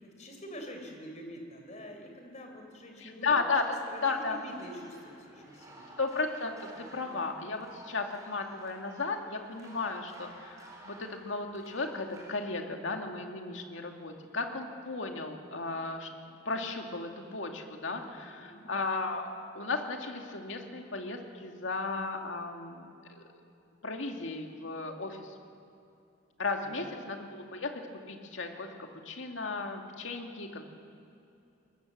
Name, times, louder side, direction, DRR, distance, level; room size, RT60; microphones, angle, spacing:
voice 1, 0.0-3.4 3.9-5.9 6.8-7.1 17.9-18.6 26.8-26.9, equal, 35° left, 3 dB, 4.0 m, -46 dB
voice 2, 3.0-4.4 6.0-16.1 16.5-23.2 23.8-25.3 26.4-30.6, left 3 dB, 70° left, 3 dB, 2.3 m, -35 dB
sound 1, 3.8-12.4, right 1 dB, 20° right, 4.2 m, -53 dB
21.0 x 20.5 x 7.6 m, 2.7 s
head